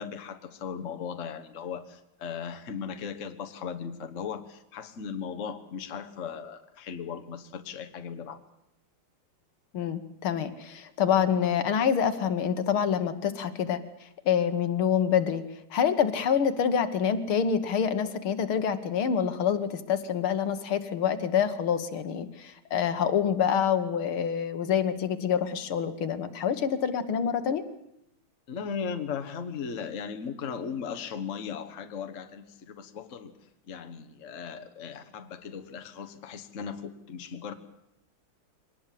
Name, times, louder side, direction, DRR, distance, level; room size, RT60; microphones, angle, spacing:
voice 1, 0.0-8.4 28.5-37.5, left 6 dB, 40° left, 8 dB, 1.4 m, -37 dB
voice 2, 9.7-15.4 15.7-27.6, left 8 dB, 75° left, 10 dB, 2.1 m, -26 dB
23.0 x 19.0 x 7.6 m, 0.82 s
omnidirectional pair, 2.4 m